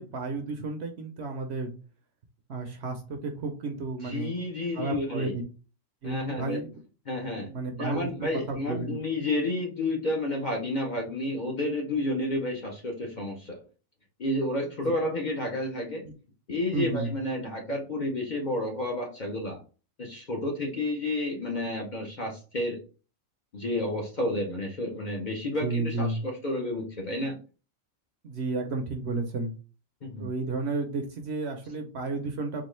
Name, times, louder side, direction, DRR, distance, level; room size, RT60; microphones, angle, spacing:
voice 1, 0.0-1.7 2.5-4.4 4.7-5.4 6.0-6.7 7.4-9.0 16.0-16.1 16.7-17.2 25.6-26.2 28.2-29.5 30.2-32.6, right 3 dB, 60° right, 4 dB, 0.8 m, -32 dB
voice 2, 4.0-5.3 6.0-6.6 7.1-7.5 7.8-13.6 14.2-16.0 16.5-19.6 20.0-22.8 23.5-27.4 30.0-30.3, left 1 dB, 45° left, 0 dB, 0.7 m, -31 dB
3.7 x 2.3 x 3.1 m, 0.35 s
omnidirectional pair, 1.4 m